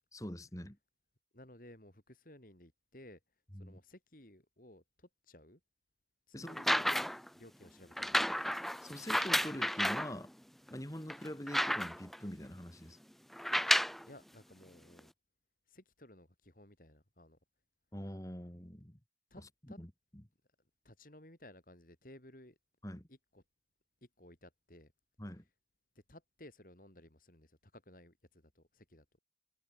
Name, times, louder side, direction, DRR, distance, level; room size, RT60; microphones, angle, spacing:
voice 1, 0.1-0.8 3.5-3.8 6.3-6.6 8.8-10.3 10.7-13.0 17.9-19.0 19.8-19.9 22.8-23.1 25.2-25.4, equal, 20° left, 2.9 m, -44 dB
voice 2, 1.3-3.2 3.5-5.6 6.3-7.1 7.3-8.5 14.1-15.1 15.7-17.4 19.3-19.8 20.8-22.6 23.1-23.4 24.0-24.9 25.9-29.1, left 1 dB, 50° left, 4.1 m, -57 dB
sound 1, 6.5-7.3 8.0-10.1 10.7-10.8 11.1-12.2 13.3-14.0 15.0-15.1, equal, ahead, 0.4 m, -32 dB
head